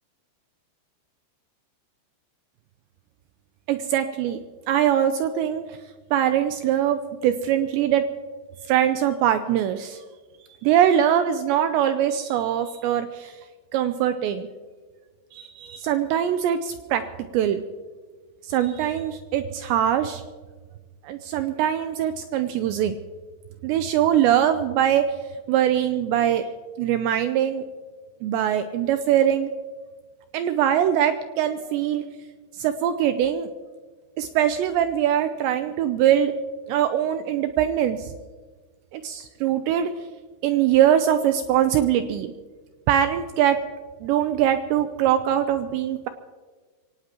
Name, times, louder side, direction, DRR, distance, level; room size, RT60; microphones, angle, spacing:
voice 1, 3.7-4.4 4.7-5.8 6.1-8.1 8.7-10.0 10.6-13.4 13.7-14.5 15.3-17.0 17.3-17.6 18.4-20.2 21.0-23.0 23.6-25.1 25.5-26.5 26.8-27.7 28.2-29.5 30.3-32.0 32.6-33.5 34.2-36.3 36.7-38.1 38.9-39.9 40.4-42.3 42.9-43.6 44.0-46.1, right 10 dB, 85° right, 9 dB, 2.5 m, -22 dB
24.0 x 18.0 x 3.0 m, 1.4 s
omnidirectional pair, 5.8 m